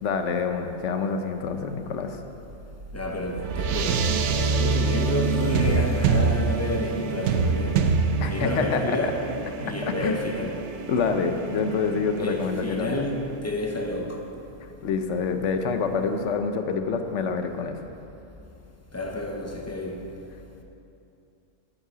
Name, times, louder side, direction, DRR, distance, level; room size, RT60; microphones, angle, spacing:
voice 1, 0.0-2.2 8.2-9.1 9.8-10.2 10.9-13.0 14.6-17.8, left 5 dB, 70° left, 1.0 m, -27 dB
sound 1, 2.4-13.2, right 5 dB, 70° right, 0.9 m, -26 dB
voice 2, 2.9-7.9 8.2-9.2 9.6-10.7 12.2-14.3 18.9-20.1, left 1 dB, 15° left, 0.6 m, -30 dB
9.7 x 8.2 x 4.9 m
omnidirectional pair, 1.3 m